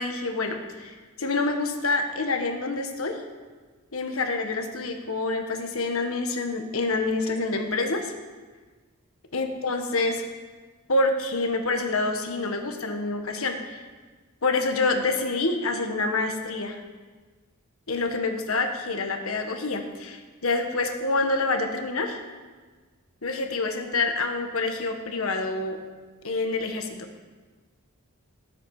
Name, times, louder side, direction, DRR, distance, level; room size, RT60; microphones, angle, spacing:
voice 1, 0.0-3.2 3.9-8.1 9.3-10.2 10.9-13.8 14.4-16.8 17.9-22.2 23.2-25.8 26.2-27.1, left 3 dB, 70° left, 5 dB, 1.4 m, -27 dB
18.5 x 8.2 x 4.9 m, 1.4 s
head